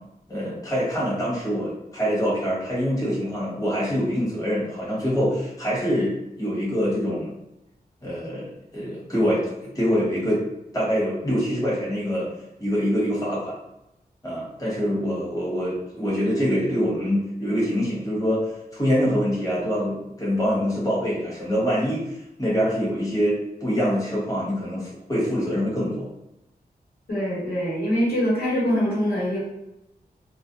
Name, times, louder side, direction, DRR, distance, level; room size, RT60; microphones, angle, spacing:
voice 1, 0.3-7.3 8.0-10.4 10.7-12.3 12.6-13.6 14.2-18.4 18.7-26.1, equal, 20° left, -7 dB, 1.0 m, -25 dB
voice 2, 27.1-29.4, equal, 75° left, -8 dB, 1.2 m, -23 dB
2.4 x 2.0 x 2.6 m, 0.87 s
wide cardioid pair, 80°, 16 cm